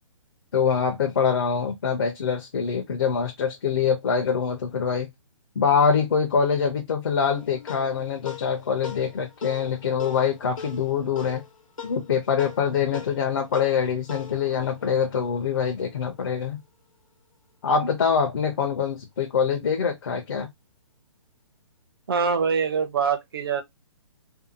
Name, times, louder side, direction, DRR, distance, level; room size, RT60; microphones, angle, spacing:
voice 1, 0.5-5.1 5.6-11.4 11.8-16.6 17.6-20.5, left 6 dB, 45° left, 0.5 m, -24 dB
sound 1, 7.3-16.0, left 7 dB, 85° left, 0.8 m, -42 dB
voice 2, 22.1-23.6, right 6 dB, 45° right, 0.6 m, -24 dB
2.7 x 2.1 x 2.5 m
hypercardioid pair, 175°, 17 cm